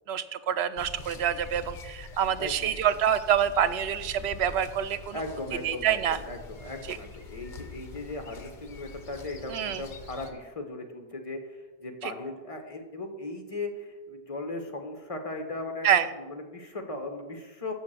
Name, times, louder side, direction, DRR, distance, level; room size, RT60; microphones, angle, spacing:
voice 1, 0.1-5.2 5.6-6.2 6.9-7.0 9.5-9.8 15.8-16.1, right 9 dB, 90° right, 13 dB, 0.9 m, -26 dB
sound 1, 0.8-10.3, left 3 dB, 50° left, 1.1 m, -45 dB
voice 2, 2.4-2.8 5.1-15.9 16.2-17.7, left 2 dB, 35° left, 5 dB, 1.3 m, -38 dB
7.2 x 6.5 x 7.5 m, 1.2 s
omnidirectional pair, 1.0 m